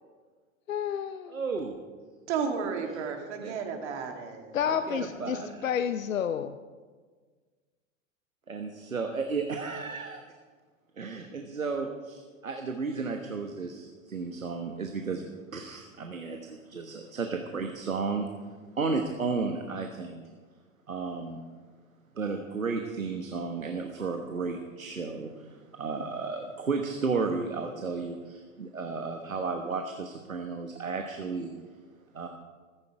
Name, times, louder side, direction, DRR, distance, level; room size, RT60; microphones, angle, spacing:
voice 1, 0.7-1.4 4.5-6.6, left 8 dB, 75° left, 11 dB, 0.7 m, -30 dB
voice 2, 1.3-1.8 2.8-3.0 3.4-3.5 4.6-5.7 8.5-10.2 11.0-18.3 18.7-20.2 20.9-21.4 22.2-31.5 32.1-32.3, right 4 dB, 85° right, 5 dB, 1.3 m, -33 dB
voice 3, 2.3-4.6 5.0-5.4, right 6 dB, 55° right, 3 dB, 2.5 m, -33 dB
15.0 x 14.5 x 4.8 m, 1.5 s
figure-of-eight pair, 90°, 40 cm